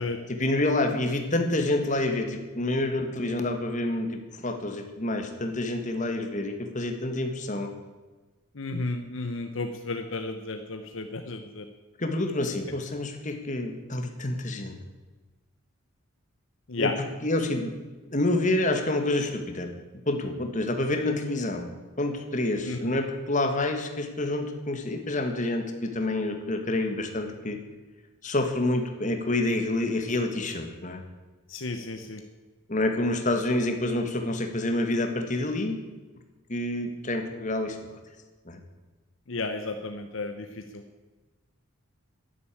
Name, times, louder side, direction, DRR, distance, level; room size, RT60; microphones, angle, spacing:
voice 1, 0.3-7.7 12.0-14.8 16.8-17.7 18.1-19.7 20.1-21.7 22.0-27.6 28.2-31.0 32.7-35.8 36.5-37.8 38.5-38.6, left 2 dB, 35° left, 5 dB, 1.7 m, -28 dB
voice 2, 8.6-11.6 16.7-16.9 22.6-22.8 31.5-32.2 39.3-40.5 40.7-40.8, left 3 dB, 65° left, 6 dB, 1.0 m, -32 dB
11.0 x 11.0 x 8.5 m, 1.3 s
head